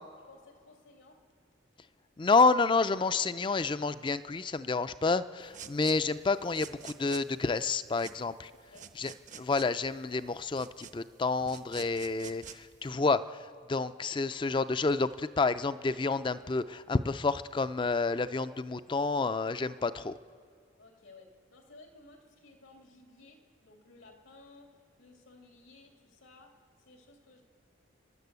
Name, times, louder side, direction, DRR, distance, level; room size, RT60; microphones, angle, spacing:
voice 1, 0.2-1.2 8.5-8.9 20.8-27.4, left 2 dB, 90° left, 2 dB, 2.7 m, -57 dB
voice 2, 2.2-8.5 8.9-20.1, left 3 dB, 25° left, 13 dB, 0.4 m, -29 dB
sound 1, 5.4-12.9, right 8 dB, 40° right, 0.6 m, -50 dB
29.5 x 11.0 x 8.2 m, 2.2 s
head